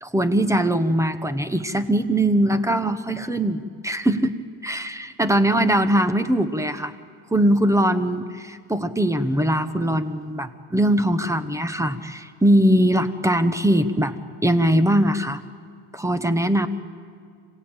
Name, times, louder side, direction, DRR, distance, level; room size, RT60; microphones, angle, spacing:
voice 1, 0.0-4.3 4.6-6.9 7.3-14.2 14.4-15.4 15.9-16.7, right 1 dB, 5° right, 10 dB, 0.9 m, -21 dB
26.5 x 17.5 x 8.9 m, 2.2 s
cardioid pair, 130°, 45 cm